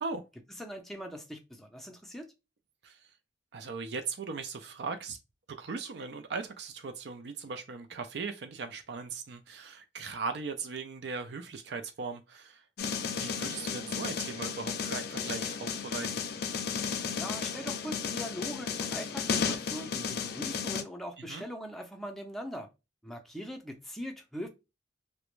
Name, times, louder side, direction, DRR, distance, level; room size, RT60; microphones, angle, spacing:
voice 1, 0.6-2.3 17.1-22.7 23.0-24.5, equal, ahead, 0.5 m, -41 dB
voice 2, 3.5-5.2 5.5-12.6 13.2-16.3 21.2-21.4, right 4 dB, 65° right, 0.4 m, -38 dB
sound 1, 12.8-20.8, left 6 dB, 55° left, 0.4 m, -34 dB
2.4 x 2.1 x 3.0 m
head